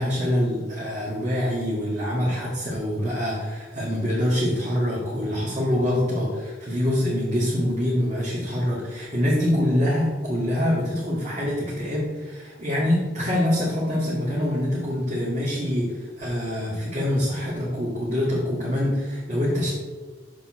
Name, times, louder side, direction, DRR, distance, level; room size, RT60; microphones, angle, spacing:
voice 1, 0.0-19.7, left 1 dB, 40° right, -8 dB, 2.1 m, -25 dB
7.4 x 6.4 x 4.4 m, 1.4 s
head